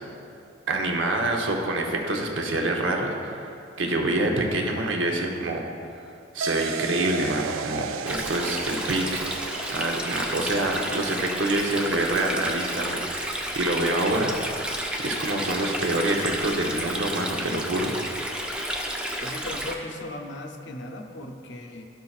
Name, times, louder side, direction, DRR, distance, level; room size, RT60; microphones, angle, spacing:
voice 1, 0.7-3.3 3.8-5.6 5.9-6.0 6.3-9.4 9.7-14.3 14.7-17.9, right 2 dB, 70° right, 1 dB, 0.8 m, -26 dB
sound 1, 6.4-15.4, right 6 dB, 85° right, 0.3 m, -37 dB
Stream, 8.1-19.7, equal, 5° right, 0.5 m, -31 dB
voice 2, 19.2-21.9, left 1 dB, 60° left, 3 dB, 0.7 m, -37 dB
13.0 x 5.6 x 2.4 m, 2.5 s
head